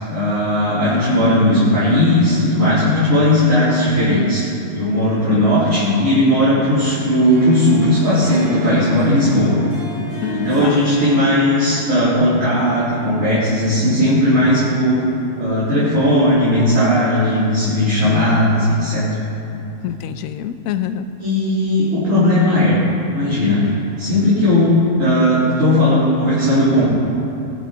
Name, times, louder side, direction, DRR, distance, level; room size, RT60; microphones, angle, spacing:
voice 1, 0.1-9.6 10.3-15.0 15.4-19.0 19.5-19.6 21.2-22.7 23.1-23.6 24.0-26.8, left 1 dB, 55° right, -13 dB, 4.2 m, -16 dB
voice 2, 5.0-5.4 10.2-10.8 19.8-21.1, left 10 dB, 70° left, 11 dB, 1.0 m, -26 dB
Harp, 7.1-15.4, right 1 dB, 80° right, 4.0 m, -35 dB
21.5 x 9.7 x 3.9 m, 2.8 s
omnidirectional pair, 1.6 m